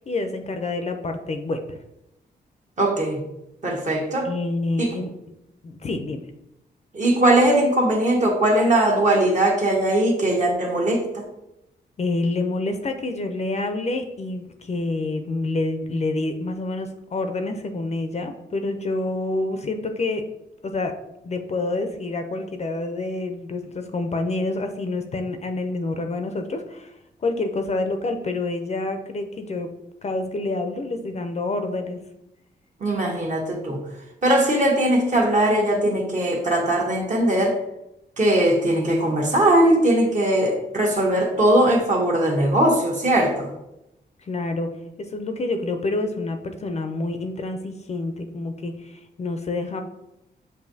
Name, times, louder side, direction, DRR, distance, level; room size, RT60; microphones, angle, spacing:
voice 1, 0.0-1.8 4.2-5.1 5.6-6.2 12.0-20.2 20.6-20.9 21.2-29.7 30.0-32.0 44.2-44.7 45.0-49.8, left 2 dB, 40° left, 6 dB, 0.5 m, -27 dB
voice 2, 2.8-3.2 3.6-4.3 4.8-4.9 6.9-11.3 32.8-33.8 34.2-37.6 38.2-43.5, right 1 dB, 45° right, 0 dB, 1.1 m, -20 dB
6.8 x 2.7 x 2.7 m, 0.87 s
cardioid pair, 100°, 18 cm